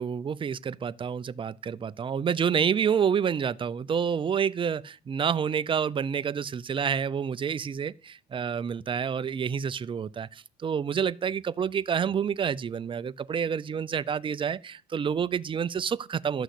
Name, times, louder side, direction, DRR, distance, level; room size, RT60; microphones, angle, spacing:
voice 1, 0.0-16.4, right 7 dB, 30° right, 0.5 m, -28 dB
13.0 x 6.1 x 8.3 m
cardioid pair, 110°, 17 cm